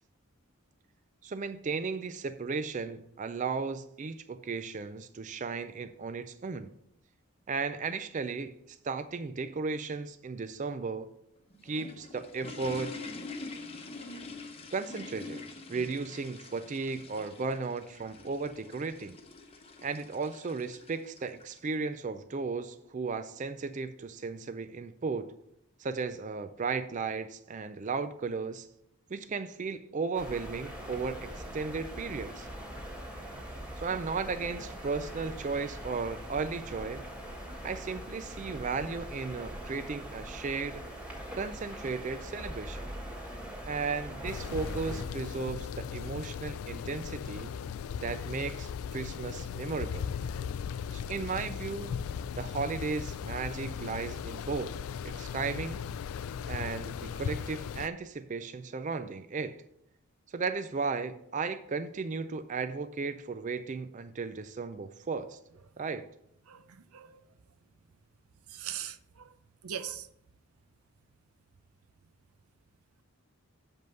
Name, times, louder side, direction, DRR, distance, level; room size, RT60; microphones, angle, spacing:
voice 1, 1.2-6.7 7.5-11.1 11.6-12.9 14.7-15.4 15.7-19.2 19.8-25.3 25.8-28.7 29.1-32.5 33.8-37.0 37.6-40.8 41.3-42.8 43.7-47.5 48.0-50.1 50.9-51.9 52.3-54.7 55.0-55.8 56.5-59.6 60.3-65.4 65.8-66.1, right 4 dB, 35° right, 0.4 m, -35 dB
sound 1, 11.4-21.7, left 3 dB, 25° left, 0.9 m, -45 dB
sound 2, 30.1-45.0, equal, 5° right, 1.6 m, -42 dB
sound 3, 44.2-57.9, left 7 dB, 75° left, 0.3 m, -37 dB
voice 2, 68.5-69.3 69.6-70.1, right 9 dB, 85° right, 0.6 m, -39 dB
7.7 x 5.3 x 5.4 m
head